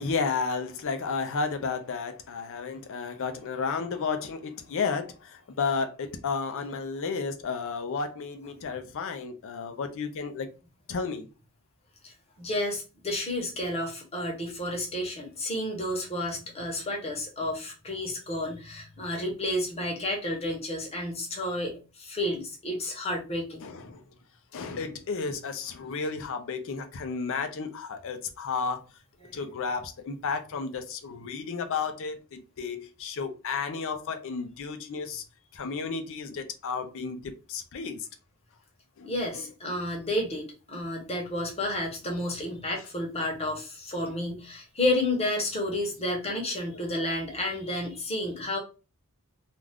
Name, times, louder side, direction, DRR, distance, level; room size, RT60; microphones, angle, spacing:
voice 1, 0.0-10.5 10.9-11.3 23.6-24.0 24.5-28.8 29.3-35.2 35.5-38.1 39.0-39.5, left 5 dB, 65° left, 0.5 m, -32 dB
voice 2, 12.4-23.7 29.2-29.3 39.0-48.6, left 1 dB, 30° left, 0.9 m, -31 dB
2.4 x 2.3 x 3.4 m
head